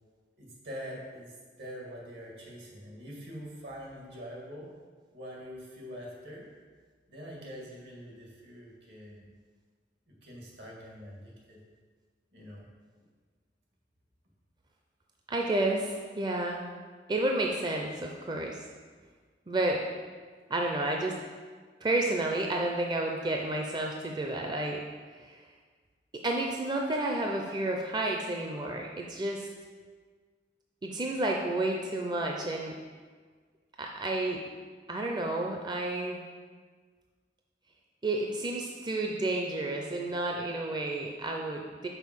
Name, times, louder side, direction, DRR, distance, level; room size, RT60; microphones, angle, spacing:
voice 1, 0.4-4.7 5.1-6.5 7.1-9.2 10.1-11.6 12.3-12.6, equal, 75° right, -3 dB, 1.9 m, -44 dB
voice 2, 15.3-16.6 17.1-18.6 19.5-19.8 20.5-21.1 21.8-24.8 25.2-25.4 26.1-29.5 30.8-32.7 33.8-34.4 34.9-36.2 38.0-41.9, right 2 dB, 25° right, 1 dB, 0.5 m, -31 dB
5.5 x 4.3 x 6.2 m, 1.5 s
head